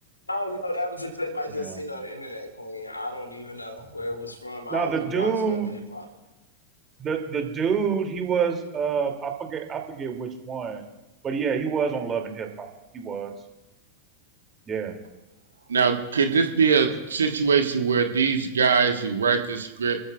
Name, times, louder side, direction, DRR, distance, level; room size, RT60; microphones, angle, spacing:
voice 1, 0.3-6.1, left 1 dB, 85° left, 2 dB, 2.8 m, -33 dB
voice 2, 4.7-5.7 7.0-10.8 11.2-12.7 12.9-13.3 14.7-14.9, right 6 dB, 25° right, 3 dB, 2.7 m, -27 dB
voice 3, 15.7-20.0, right 5 dB, 70° right, 6 dB, 1.3 m, -22 dB
27.5 x 14.0 x 2.4 m, 1.0 s
figure-of-eight pair, 90°, 0 cm